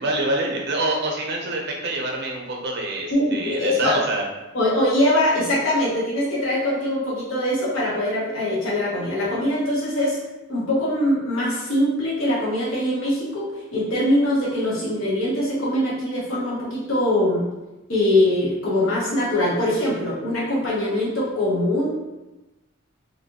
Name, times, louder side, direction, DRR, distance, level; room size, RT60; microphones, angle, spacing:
voice 1, 0.0-4.2, right 2 dB, 55° right, 0 dB, 0.6 m, -26 dB
voice 2, 3.1-4.0 4.5-10.2 10.5-13.5 13.7-17.4 17.9-21.9, left 1 dB, 70° left, -7 dB, 1.0 m, -22 dB
3.2 x 2.6 x 2.8 m, 1.0 s
head